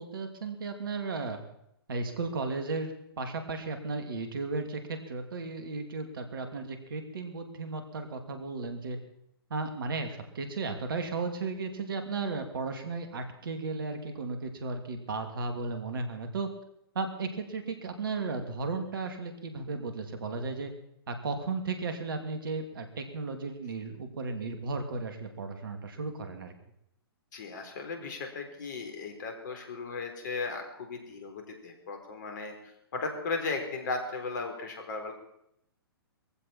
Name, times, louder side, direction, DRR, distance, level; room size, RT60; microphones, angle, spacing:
voice 1, 0.0-1.4 1.9-9.0 9.5-16.5 16.9-20.7 21.1-26.5, right 3 dB, 60° right, 6 dB, 2.7 m, -35 dB
voice 2, 27.3-35.1, left 4 dB, 50° left, 4 dB, 4.0 m, -36 dB
21.0 x 15.5 x 4.5 m, 0.77 s
figure-of-eight pair, 120°, 13 cm